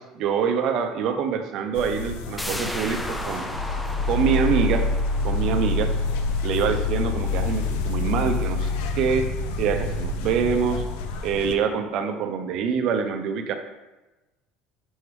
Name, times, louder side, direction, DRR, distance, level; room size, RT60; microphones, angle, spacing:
voice 1, 0.0-3.5 4.1-4.9 5.2-5.9 6.4-9.3 9.6-10.8 11.2-13.6, right 6 dB, 45° right, 7 dB, 0.6 m, -25 dB
sound 1, 1.7-11.5, left 3 dB, 85° left, 0.6 m, -27 dB
sound 2, 2.4-7.9 8.2-8.3, left 1 dB, 5° left, 0.3 m, -36 dB
6.2 x 3.3 x 4.7 m, 1.1 s
cardioid pair, 165°, 0 cm